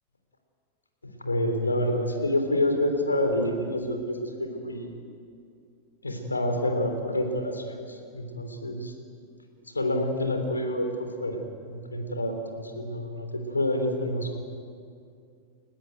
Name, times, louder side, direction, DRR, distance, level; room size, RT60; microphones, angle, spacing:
voice 1, 1.0-4.9 6.0-8.9 9.7-11.4 11.7-14.4, left 1 dB, 80° left, 5 dB, 3.5 m, -28 dB
30.0 x 14.5 x 9.2 m, 2.4 s
figure-of-eight pair, 90°, 0 cm